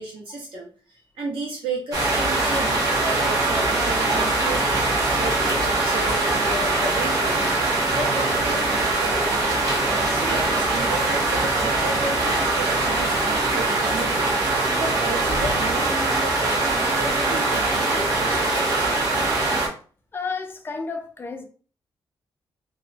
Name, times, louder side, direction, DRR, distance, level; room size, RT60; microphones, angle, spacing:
voice 1, 0.0-9.4 10.0-19.0, right 2 dB, 70° right, 1.1 m, -33 dB
sound 1, 1.9-19.7, right 2 dB, 40° right, 0.9 m, -22 dB
voice 2, 20.1-21.4, left 4 dB, 25° left, 0.4 m, -31 dB
2.6 x 2.1 x 2.6 m
wide cardioid pair, 160°, 9 cm